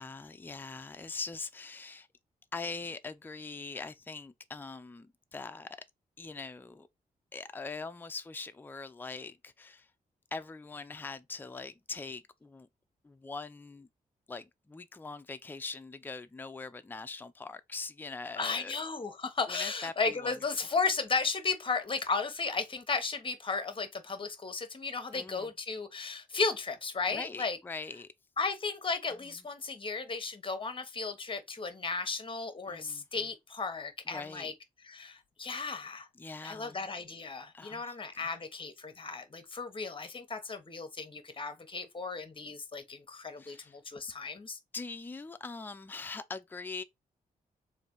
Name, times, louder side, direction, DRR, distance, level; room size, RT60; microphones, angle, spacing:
voice 1, 0.0-2.1 2.5-5.8 6.2-6.9 7.3-9.9 10.3-12.7 13.0-13.9 14.3-18.8 19.5-20.3 25.1-25.5 27.1-28.1 32.7-33.0 34.1-34.5 36.2-36.8 37.5-38.3 43.4-43.8 44.7-46.8, left 4 dB, 10° left, 0.4 m, -42 dB
voice 2, 18.4-27.6 28.4-34.5 34.8-36.1 36.4-44.6, left 4 dB, 35° left, 1.0 m, -35 dB
3.3 x 2.6 x 3.8 m
cardioid pair, 65°, 16 cm